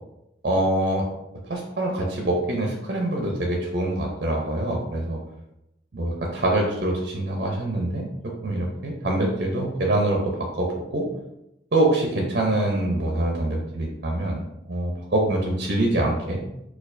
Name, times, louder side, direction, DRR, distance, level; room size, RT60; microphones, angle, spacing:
voice 1, 0.4-1.1 1.5-5.2 5.9-11.1 11.7-14.4 14.7-16.4, right 1 dB, 55° right, 0 dB, 0.5 m, -25 dB
4.2 x 2.3 x 2.5 m, 0.86 s
head